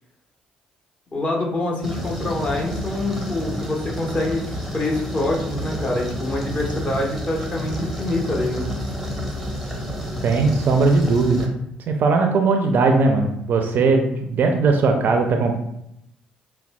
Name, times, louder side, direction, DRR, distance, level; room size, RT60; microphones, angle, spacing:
voice 1, 1.1-8.6, left 2 dB, 30° left, -2 dB, 1.1 m, -25 dB
Flush Refill, 1.8-11.5, equal, 5° left, 0.9 m, -30 dB
voice 2, 10.2-11.5 11.9-15.6, right 3 dB, 50° right, 4 dB, 0.5 m, -19 dB
5.2 x 2.2 x 2.2 m, 0.79 s
figure-of-eight pair, 45°, 4 cm